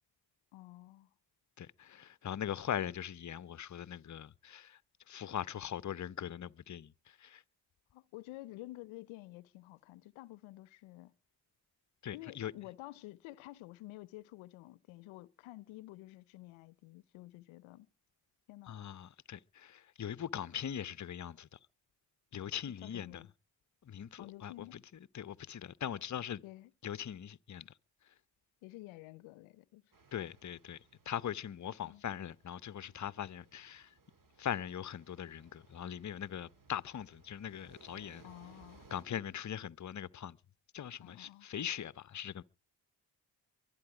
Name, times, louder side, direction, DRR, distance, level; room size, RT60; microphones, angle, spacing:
voice 1, 0.5-1.1 7.9-11.1 12.1-17.9 18.5-18.8 22.8-23.3 24.2-24.8 26.4-26.7 28.6-29.8 31.8-32.0 38.2-38.9 41.0-41.5, left 18 dB, 85° left, 0.6 m, -50 dB
voice 2, 1.6-4.8 5.1-7.4 12.0-12.5 18.7-21.6 22.3-23.2 23.8-24.8 25.1-26.4 26.8-27.7 30.1-30.8 31.1-33.9 34.4-38.3 38.9-40.4 40.7-42.4, left 9 dB, 40° left, 0.8 m, -41 dB
sound 1, 29.9-39.0, right 3 dB, 45° right, 2.9 m, -63 dB
23.5 x 8.9 x 4.9 m
supercardioid pair, 45°, 46 cm